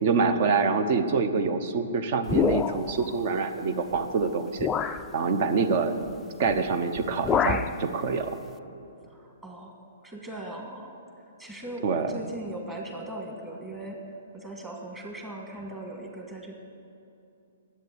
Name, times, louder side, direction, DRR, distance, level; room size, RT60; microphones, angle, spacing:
voice 1, 0.0-6.0 6.4-8.4 11.8-12.1, right 4 dB, 50° right, 10 dB, 1.0 m, -26 dB
sound 1, 2.3-3.1 3.9-4.1 4.6-5.1 6.5-6.7 7.0-7.8, left 7 dB, 15° left, 0.3 m, -27 dB
voice 2, 9.0-14.0 14.3-16.5, right 1 dB, 15° right, 0 dB, 1.8 m, -39 dB
10.5 x 8.2 x 9.6 m, 2.7 s
hypercardioid pair, 150°, 0 cm